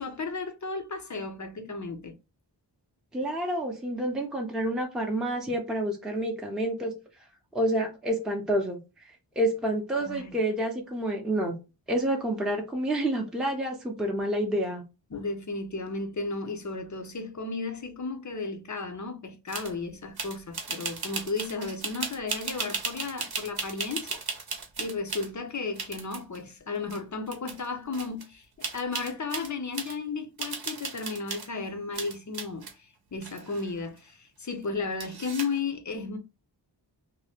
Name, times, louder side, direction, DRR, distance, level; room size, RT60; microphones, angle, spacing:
voice 1, 0.0-2.1 10.0-10.4 15.1-24.2 24.8-36.2, left 4 dB, 40° left, 0.6 m, -34 dB
voice 2, 3.1-6.9 7.5-8.8 9.4-11.5 11.9-14.8, right 1 dB, ahead, 0.6 m, -28 dB
sound 1, 19.5-19.7 20.2-25.3 25.8-26.4 26.9-27.0 27.3-27.7 27.9-28.2 28.6-30.0 30.4-31.6 31.9-32.7 33.2-34.0 35.0-35.6, right 4 dB, 55° right, 0.7 m, -36 dB
2.7 x 2.1 x 3.4 m
wide cardioid pair, 55°, 44 cm